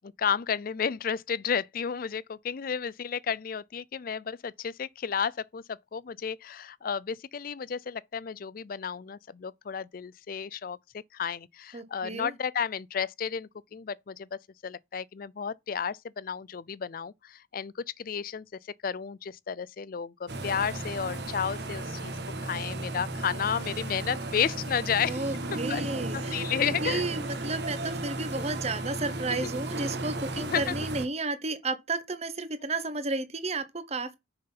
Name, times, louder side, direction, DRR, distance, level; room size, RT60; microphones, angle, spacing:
voice 1, 0.0-18.5 18.8-22.1 22.4-25.2 25.5-25.8 26.1-27.0 28.4-28.5 29.3-29.5 30.4-30.8, left 7 dB, 50° left, 0.4 m, -32 dB
voice 2, 11.7-12.3 25.0-34.2, right 3 dB, 35° right, 1.1 m, -33 dB
sound 1, 20.3-31.1, right 2 dB, 60° right, 1.4 m, -35 dB
6.6 x 5.7 x 5.5 m
head